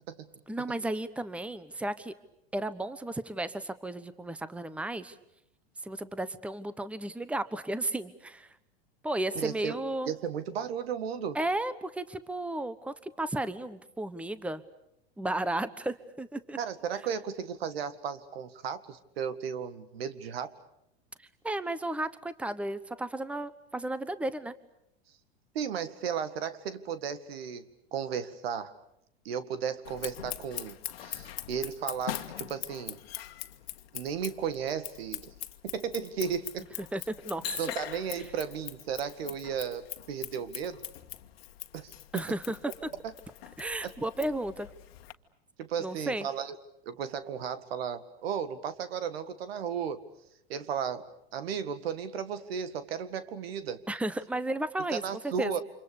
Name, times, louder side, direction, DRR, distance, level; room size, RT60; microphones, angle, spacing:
voice 1, 0.5-2.1 2.5-5.1 5.8-8.5 9.0-10.1 11.3-14.6 15.2-16.6 21.4-24.5 36.9-37.6 42.1-42.6 43.6-44.7 45.8-46.3 53.9-55.0 55.4-55.5, right 1 dB, 5° right, 15 dB, 1.2 m, -33 dB
voice 2, 9.4-9.8 10.1-11.4 16.6-20.5 25.5-27.6 27.9-28.7 29.3-33.0 33.9-35.3 35.6-36.7 37.6-40.8 41.7-42.2 43.0-43.1 43.8-43.9 45.6-46.6 46.8-50.0 50.5-53.8 54.9-55.6, right 7 dB, 75° right, 12 dB, 2.0 m, -34 dB
Scissors, 29.8-45.1, left 13 dB, 70° left, 1.6 m, -42 dB
29.5 x 26.5 x 6.8 m, 0.79 s
hypercardioid pair, 95°, 31 cm